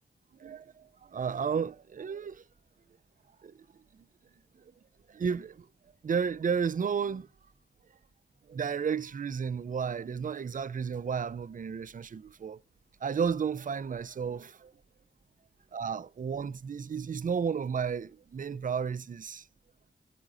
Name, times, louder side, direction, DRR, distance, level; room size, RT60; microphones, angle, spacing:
voice 1, 0.4-2.4 3.4-3.6 5.1-5.7 6.0-7.3 8.5-12.6 13.0-14.7 15.7-19.5, right 6 dB, 40° right, 0.4 m, -32 dB
13.0 x 5.0 x 3.7 m
cardioid pair, 45°, 21 cm